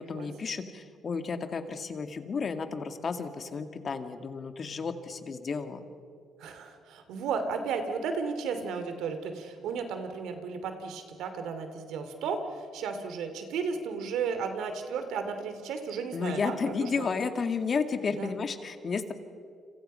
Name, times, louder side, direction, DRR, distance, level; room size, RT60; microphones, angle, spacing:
voice 1, 0.0-5.8 16.1-19.1, left 5 dB, 45° left, 8 dB, 2.0 m, -32 dB
voice 2, 6.4-17.2 18.1-18.3, right 5 dB, 85° right, 8 dB, 2.8 m, -34 dB
29.5 x 26.5 x 5.7 m, 2.3 s
cardioid pair, 90°, 0 cm